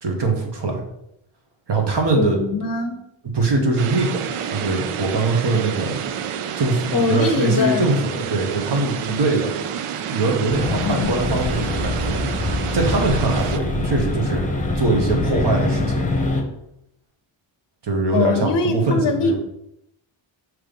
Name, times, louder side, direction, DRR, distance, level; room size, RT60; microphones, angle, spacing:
voice 1, 0.0-0.8 1.7-2.4 3.3-6.0 6.6-9.5 10.1-12.2 12.7-14.4 14.7-16.1 17.8-19.4, right 3 dB, 55° right, 2 dB, 1.5 m, -22 dB
voice 2, 2.1-3.0 6.9-7.9 10.8-11.1 11.9-12.2 18.1-19.3, left 4 dB, 45° left, 7 dB, 0.6 m, -22 dB
sound 1, 3.8-13.6, right 8 dB, 85° right, 0.6 m, -29 dB
sound 2, 10.5-16.4, left 2 dB, 15° left, 0.9 m, -24 dB
5.9 x 3.2 x 5.2 m, 0.80 s
wide cardioid pair, 115°, 49 cm